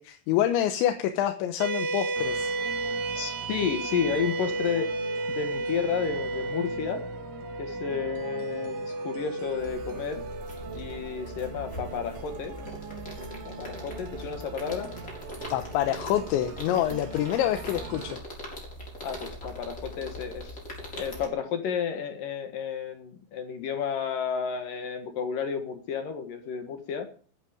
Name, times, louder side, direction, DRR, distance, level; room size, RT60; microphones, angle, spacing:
voice 1, 0.0-2.5 15.5-18.2, left 11 dB, 80° left, 7 dB, 3.2 m, -27 dB
sound 1, 1.6-14.2, right 2 dB, 55° right, 5.9 m, -34 dB
sound 2, 2.2-18.2, right 6 dB, 85° right, 4.1 m, -43 dB
voice 2, 3.1-4.9 5.3-7.0 7.6-10.2 10.7-12.6 13.5-14.9 19.0-20.6 21.0-27.1, left 7 dB, 60° left, 6 dB, 2.6 m, -32 dB
sound 3, 9.6-21.3, left 1 dB, 20° left, 4.7 m, -41 dB
15.0 x 11.5 x 5.1 m, 0.43 s
omnidirectional pair, 5.5 m